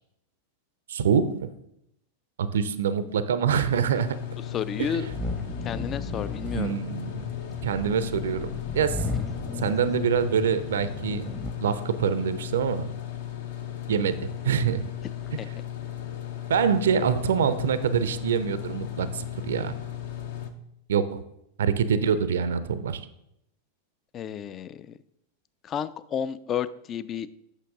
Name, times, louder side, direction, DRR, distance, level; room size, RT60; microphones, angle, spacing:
voice 1, 0.9-1.5 2.4-4.2 4.8-4.9 6.5-7.3 7.6-9.1 9.6-11.2 11.6-12.9 13.9-14.9 16.5-19.7 20.9-21.2 21.6-23.0, right 7 dB, 65° right, 14 dB, 0.4 m, -25 dB
sound 1, 3.9-20.5, left 11 dB, 55° left, 0.7 m, -36 dB
voice 2, 4.5-5.1 5.6-6.8 15.4-15.5 24.1-24.9 25.6-27.3, left 8 dB, 30° left, 16 dB, 0.3 m, -31 dB
sound 2, 4.8-11.5, left 2 dB, 10° left, 0.8 m, -35 dB
8.2 x 5.8 x 3.6 m, 0.79 s
figure-of-eight pair, 90°, 0 cm